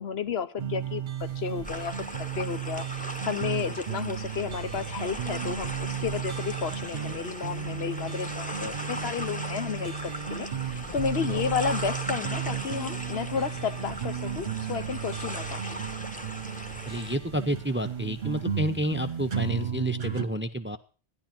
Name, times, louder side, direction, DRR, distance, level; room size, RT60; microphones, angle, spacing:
voice 1, 0.0-15.7, left 7 dB, 65° left, 13 dB, 1.1 m, -32 dB
sound 1, 0.6-20.3, right 8 dB, 50° right, 1.0 m, -34 dB
sound 2, 1.2-19.7, left 1 dB, 25° left, 1.8 m, -51 dB
sound 3, 1.6-17.2, equal, 5° left, 1.2 m, -39 dB
voice 2, 16.9-20.8, right 1 dB, 15° right, 11 dB, 0.6 m, -30 dB
13.0 x 11.0 x 5.9 m, 0.37 s
omnidirectional pair, 1.1 m